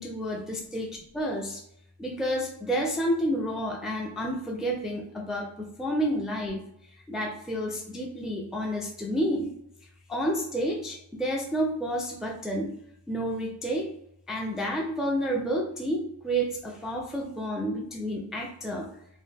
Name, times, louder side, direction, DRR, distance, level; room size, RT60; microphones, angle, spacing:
voice 1, 0.0-1.6 2.0-6.6 7.1-9.5 10.1-12.7 13.1-13.9 14.3-18.9, equal, ahead, 0 dB, 0.4 m, -30 dB
2.3 x 2.1 x 3.2 m, 0.73 s
wide cardioid pair, 55°, 43 cm